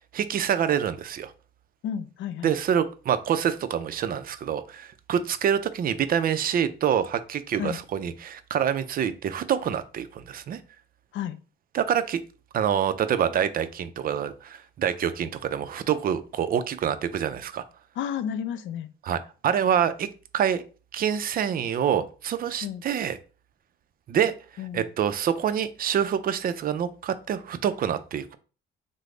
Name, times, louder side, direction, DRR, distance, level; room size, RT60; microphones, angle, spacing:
voice 1, 0.1-1.3 2.4-10.6 11.7-12.2 12.5-17.6 19.1-20.1 20.3-20.6 20.9-23.2 24.1-24.3 24.7-28.4, right 8 dB, 50° right, 12 dB, 0.4 m, -26 dB
voice 2, 1.8-2.5 7.6-7.8 11.1-11.4 18.0-18.9 22.6-22.8 24.6-24.9, left 9 dB, 75° left, 12 dB, 0.4 m, -32 dB
3.2 x 2.0 x 3.6 m, 0.36 s
cardioid pair, 90°, 20 cm